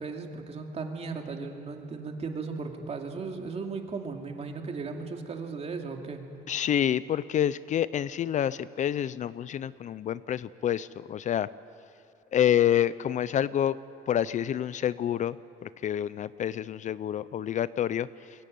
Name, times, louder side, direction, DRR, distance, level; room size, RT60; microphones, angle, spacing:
voice 1, 0.0-6.2, right 4 dB, 40° right, 3 dB, 2.5 m, -36 dB
voice 2, 6.5-11.5 12.3-13.8 14.1-15.4 15.6-18.1, left 10 dB, 45° left, 17 dB, 0.5 m, -28 dB
22.5 x 15.5 x 9.3 m, 2.6 s
cardioid pair, 110°, 17 cm